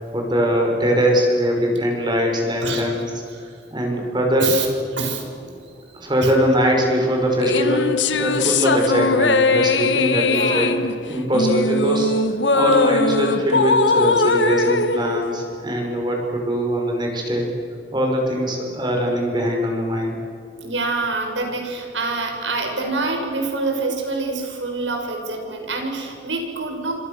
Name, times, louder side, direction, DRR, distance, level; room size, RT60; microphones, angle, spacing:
voice 1, 0.0-4.5 5.9-10.8 11.0-12.1 12.5-17.5 17.9-20.2, equal, 25° right, 1 dB, 5.7 m, -21 dB
voice 2, 4.9-5.6 5.9-6.3 10.2-10.7 20.6-26.9, right 3 dB, 85° right, 3 dB, 6.4 m, -26 dB
sound 1, 7.4-16.0, left 3 dB, 85° left, 1.4 m, -20 dB
27.5 x 26.0 x 7.0 m, 2.3 s
head